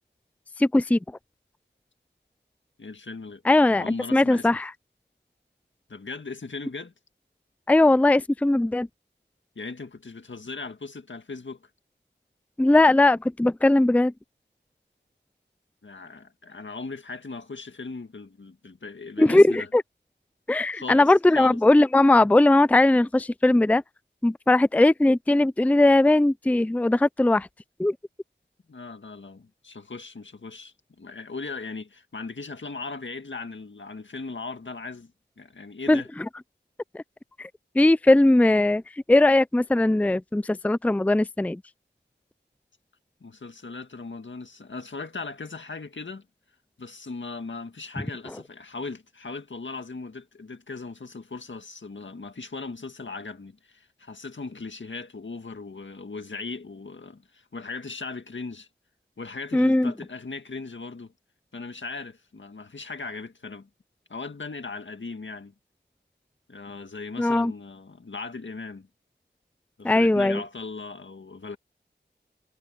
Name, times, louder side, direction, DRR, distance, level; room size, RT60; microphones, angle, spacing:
voice 1, 0.6-1.0 3.5-3.9 4.1-4.7 7.7-8.9 12.6-14.1 19.2-19.8 20.5-23.8 24.2-27.5 27.8-27.9 35.9-36.0 36.9-37.0 37.4-37.5 37.8-38.8 39.1-41.6 59.5-59.9 67.2-67.5 69.8-70.4, left 2 dB, 5° left, 0.4 m, -19 dB
voice 2, 2.8-3.4 3.7-4.5 5.9-6.9 9.6-11.6 15.8-19.7 20.7-21.0 21.3-21.6 28.7-35.1 35.4-36.1 43.2-46.3 46.8-58.7 59.2-61.1 61.5-63.7 64.1-65.5 66.5-68.9 69.8-71.6, left 4 dB, 80° left, 1.8 m, -38 dB
wide cardioid pair, 50°, 19 cm